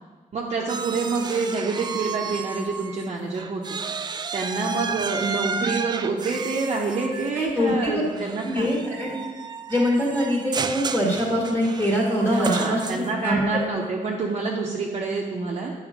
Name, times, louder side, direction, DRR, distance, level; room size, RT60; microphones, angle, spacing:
voice 1, 0.3-3.8 4.3-8.7 12.3-15.7, right 4 dB, 50° right, -3 dB, 0.9 m, -27 dB
sound 1, 0.7-3.1 3.3-13.3, right 5 dB, 30° right, 0.3 m, -32 dB
voice 2, 7.3-8.0 8.4-9.2 9.7-13.4, equal, 15° left, -4 dB, 1.6 m, -23 dB
10.0 x 5.7 x 5.1 m, 1.4 s
wide cardioid pair, 155°, 14 cm